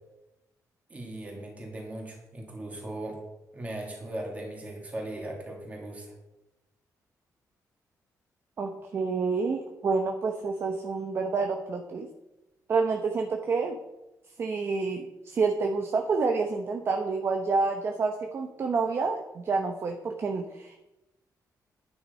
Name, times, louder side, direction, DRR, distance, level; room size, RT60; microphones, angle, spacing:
voice 1, 0.9-3.2 3.5-6.1, right 1 dB, 20° right, 0 dB, 2.8 m, -38 dB
voice 2, 8.6-12.1 12.7-13.8 14.4-20.8, right 4 dB, 40° right, 4 dB, 0.9 m, -28 dB
10.5 x 9.5 x 5.3 m, 0.98 s
wide cardioid pair, 175°, 7 cm